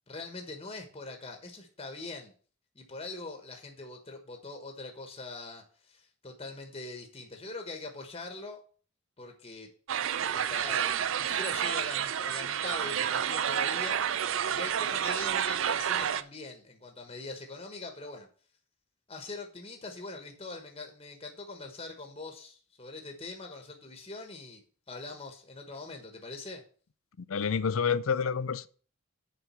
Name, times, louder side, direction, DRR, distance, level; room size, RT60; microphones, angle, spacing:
voice 1, 0.1-2.3 2.7-8.6 9.2-9.7 10.3-18.3 19.1-26.6, left 3 dB, 25° left, 1.3 m, -43 dB
sound 1, 9.9-16.2, right 9 dB, 65° right, 0.4 m, -30 dB
voice 2, 27.3-28.7, left 6 dB, 80° left, 0.5 m, -28 dB
7.3 x 5.2 x 6.9 m
head